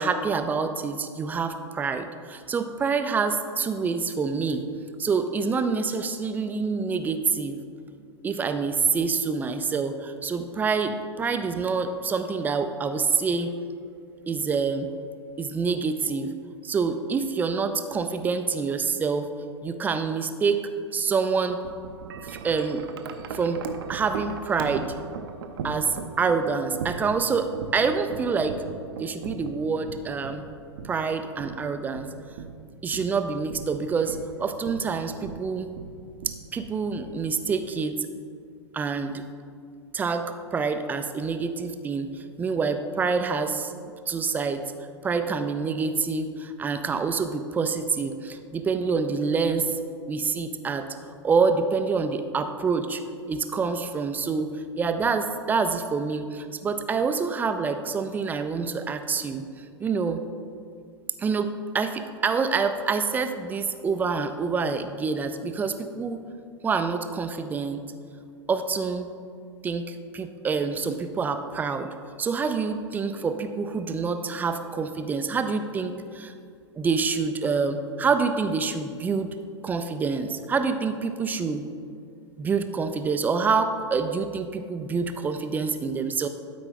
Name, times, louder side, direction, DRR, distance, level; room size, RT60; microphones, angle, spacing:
voice 1, 0.0-4.6 5.0-7.6 8.2-13.5 14.3-14.9 15.4-16.3 16.6-19.3 19.6-20.6 20.9-21.6 22.2-22.8 23.3-23.6 23.9-24.9 25.6-27.5 27.7-28.6 29.0-30.4 30.8-32.4 32.8-35.7 36.3-38.1 38.7-39.2 39.9-40.2 40.5-43.7 44.1-44.6 45.0-50.8 51.2-53.0 53.3-54.5 54.8-60.2 61.2-61.5 61.7-66.2 66.6-67.8 68.5-69.1 69.6-71.9 72.2-76.3 76.8-79.3 79.6-81.6 82.4-86.3, right 5 dB, 10° right, 8 dB, 0.4 m, -27 dB
Wind chime, 21.5-37.7, right 6 dB, 50° right, 0.6 m, -39 dB
12.0 x 4.9 x 3.8 m, 2.3 s
figure-of-eight pair, 100°, 15 cm